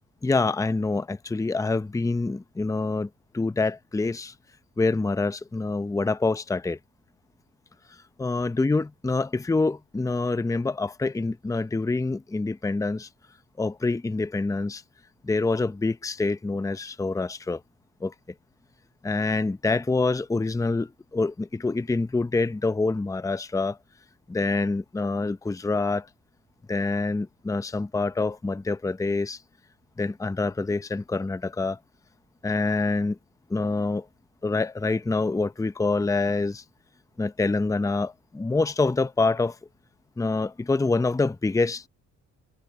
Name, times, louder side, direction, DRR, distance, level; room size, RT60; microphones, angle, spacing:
voice 1, 0.2-4.3 4.8-6.8 8.2-13.1 13.6-14.8 15.2-17.6 18.0-18.1 19.0-23.8 24.3-26.1 26.7-29.4 30.0-31.8 32.4-33.2 33.5-34.1 34.4-36.6 37.2-39.6 40.2-41.9, left 3 dB, 10° left, 0.7 m, -26 dB
cardioid pair, 90°, 30 cm